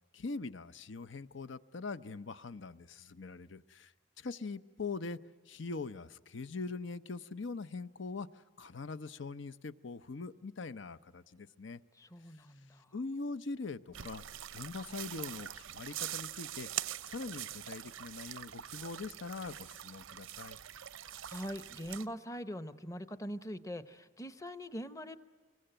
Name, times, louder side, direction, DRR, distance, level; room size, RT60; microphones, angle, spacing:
voice 1, 0.1-5.2 5.5-11.8 12.9-14.2 14.5-16.7 17.1-20.6, left 3 dB, 70° left, 0.7 m, -42 dB
voice 2, 11.9-13.0 20.9-25.2, equal, 15° left, 0.8 m, -43 dB
sound 1, 13.9-22.1, right 11 dB, 85° right, 0.7 m, -43 dB
25.5 x 23.0 x 8.9 m
head